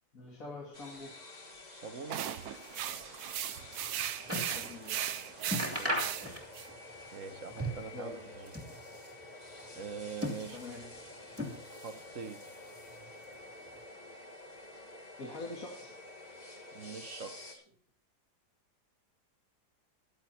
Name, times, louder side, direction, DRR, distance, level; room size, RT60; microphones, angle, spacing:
voice 1, 0.1-1.2 4.3-5.1 7.9-8.4 10.5-11.2 15.2-16.0, left 2 dB, 55° left, 2.5 m, -45 dB
sound 1, 0.7-17.5, left 2 dB, 25° left, 2.0 m, -50 dB
voice 2, 1.7-2.3 5.6-6.2 7.1-8.1 8.4-8.5 9.7-10.7 11.8-12.5 16.7-17.6, right 5 dB, 50° right, 1.6 m, -43 dB
sound 2, 2.1-6.7, right 10 dB, 70° right, 1.2 m, -37 dB
sound 3, 3.6-4.7 5.1-5.2 5.4-6.8 7.0-8.0 8.3-9.2 9.8-10.9 11.3-12.0 12.3-13.1 13.8-13.9, equal, 10° right, 2.7 m, -38 dB
15.0 x 11.5 x 4.3 m
omnidirectional pair, 1.8 m